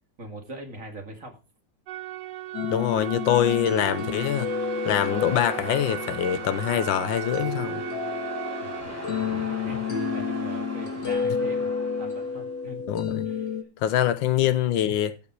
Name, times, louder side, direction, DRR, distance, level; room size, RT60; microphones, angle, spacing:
voice 1, 0.2-1.4 8.6-11.7 12.0-13.6 14.0-14.1, right 1 dB, 40° right, 2.4 m, -42 dB
sound 1, 1.9-8.8, right 14 dB, 70° right, 1.2 m, -36 dB
sound 2, 2.5-13.6, left 5 dB, 60° left, 2.5 m, -31 dB
voice 2, 2.7-4.5 4.9-7.8 12.9-13.3 13.8-15.1, left 11 dB, 75° left, 1.4 m, -24 dB
sound 3, 2.7-12.6, equal, 5° right, 3.0 m, -41 dB
14.5 x 5.6 x 4.6 m
omnidirectional pair, 2.1 m